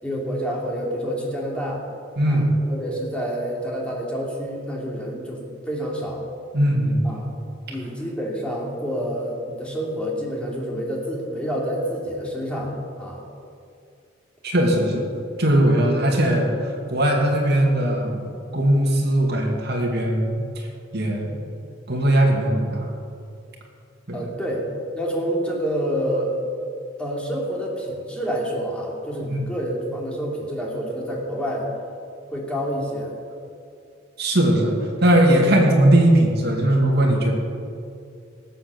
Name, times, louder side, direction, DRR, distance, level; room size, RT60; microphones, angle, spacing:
voice 1, 0.0-1.8 2.3-2.4 2.7-6.2 7.0-7.3 7.7-13.2 24.1-24.7 24.9-26.4 27.0-31.7 32.3-33.1, equal, 5° left, -3 dB, 2.8 m, -28 dB
voice 2, 2.2-2.5 6.5-7.2 7.7-7.8 14.4-15.1 15.4-18.2 18.5-20.7 20.9-21.4 21.9-22.9 24.1-24.2 29.3-29.5 34.2-37.3, right 1 dB, 60° right, 0 dB, 2.4 m, -19 dB
18.0 x 8.0 x 6.9 m, 2.4 s
head